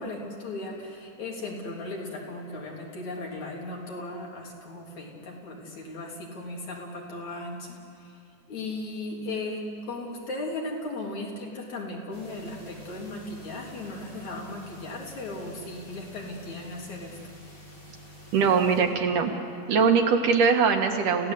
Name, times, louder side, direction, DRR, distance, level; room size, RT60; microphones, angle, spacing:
voice 1, 0.0-8.2 8.5-17.2, left 2 dB, 65° left, -2 dB, 4.8 m, -37 dB
sound 1, 12.1-18.8, left 1 dB, 35° left, 7.4 m, -48 dB
voice 2, 18.3-19.3 19.7-21.3, right 5 dB, 85° right, 3 dB, 3.2 m, -22 dB
29.5 x 16.5 x 8.3 m, 2.6 s
omnidirectional pair, 3.6 m